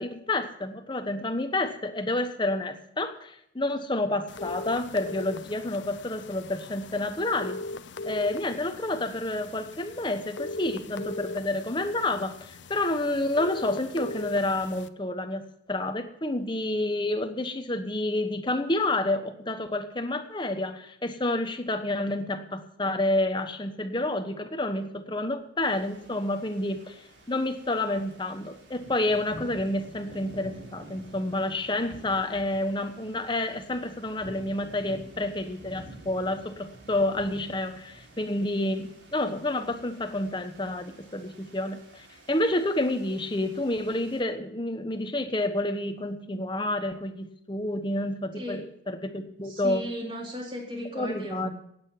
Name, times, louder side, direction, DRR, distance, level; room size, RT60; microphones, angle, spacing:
voice 1, 0.0-7.6 8.0-27.0 27.3-49.9 50.9-51.5, left 2 dB, 25° left, 8 dB, 1.2 m, -29 dB
sound 1, 4.3-14.9, left 2 dB, 75° left, 0.7 m, -39 dB
sound 2, 25.6-44.2, right 1 dB, 75° right, 3.9 m, -49 dB
voice 2, 49.4-51.5, equal, 30° right, -1 dB, 3.6 m, -36 dB
16.5 x 9.0 x 5.8 m, 0.72 s
head